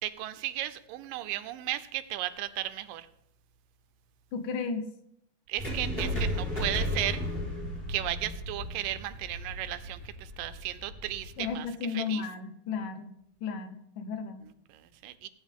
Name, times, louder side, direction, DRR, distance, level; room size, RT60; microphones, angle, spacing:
voice 1, 0.0-3.1 5.5-7.2 7.9-12.3 14.4-15.3, right 14 dB, 85° right, 12 dB, 2.4 m, -35 dB
voice 2, 4.3-4.9 11.4-13.1 13.4-14.4, left 5 dB, 75° left, 7 dB, 2.7 m, -34 dB
sound 1, 5.6-11.5, left 1 dB, 15° left, 4.0 m, -34 dB
18.5 x 9.2 x 3.6 m, 0.73 s
omnidirectional pair, 3.8 m